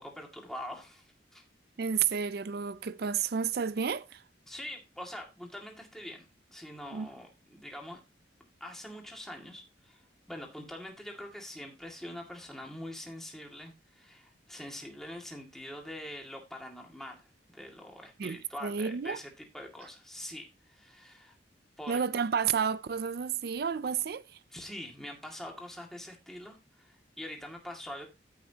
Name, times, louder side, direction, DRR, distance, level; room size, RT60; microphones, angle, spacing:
voice 1, 0.0-1.4 4.5-6.3 6.5-8.0 8.6-10.0 10.3-21.4 21.8-22.0 24.5-28.1, left 1 dB, ahead, 2.1 m, -44 dB
voice 2, 1.8-4.2 6.9-7.1 18.2-19.2 21.9-24.4, right 7 dB, 60° right, 0.4 m, -31 dB
14.0 x 6.0 x 2.8 m
head